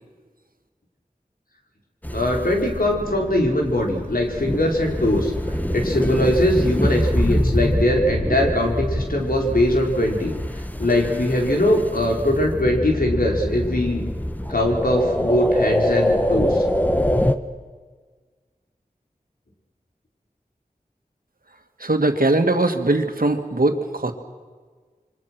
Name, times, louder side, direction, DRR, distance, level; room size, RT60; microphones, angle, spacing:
sound 1, 2.0-17.4, equal, 10° left, 1.4 m, -25 dB
voice 1, 2.1-5.3 5.7-10.3 10.8-14.1 14.5-16.6, left 1 dB, 70° left, 0 dB, 5.0 m, -21 dB
voice 2, 21.8-24.1, right 2 dB, 70° right, 6 dB, 2.1 m, -20 dB
28.5 x 24.5 x 6.3 m, 1.5 s
wide cardioid pair, 55°, 15 cm